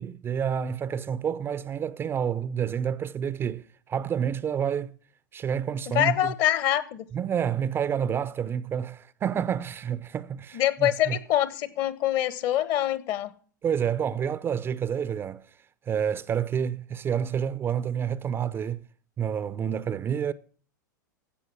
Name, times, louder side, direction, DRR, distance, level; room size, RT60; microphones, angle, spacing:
voice 1, 0.0-4.9 5.3-6.3 7.1-11.2 13.6-15.4 15.9-18.8 19.2-20.3, right 8 dB, 20° right, 0.5 m, -29 dB
voice 2, 5.9-7.1 10.5-13.3, left 12 dB, 40° left, 1.0 m, -25 dB
15.5 x 5.5 x 6.9 m
figure-of-eight pair, 95°, 11 cm